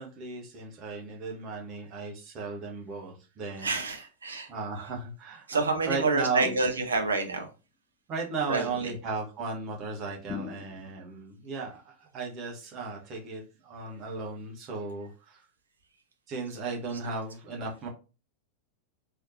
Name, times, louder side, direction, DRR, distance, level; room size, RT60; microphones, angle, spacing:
voice 1, 0.0-3.7 4.5-6.6 8.1-15.4 16.3-17.9, right 4 dB, 30° right, -1 dB, 1.4 m, -36 dB
voice 2, 3.6-4.5 5.5-7.5 8.5-8.9 16.5-16.6 16.9-17.0, right 3 dB, 75° right, 5 dB, 0.8 m, -28 dB
sound 1, 6.4-7.3 10.3-11.2, left 6 dB, 15° left, 0.4 m, -41 dB
4.0 x 3.3 x 2.8 m, 0.31 s
figure-of-eight pair, 90°, 0 cm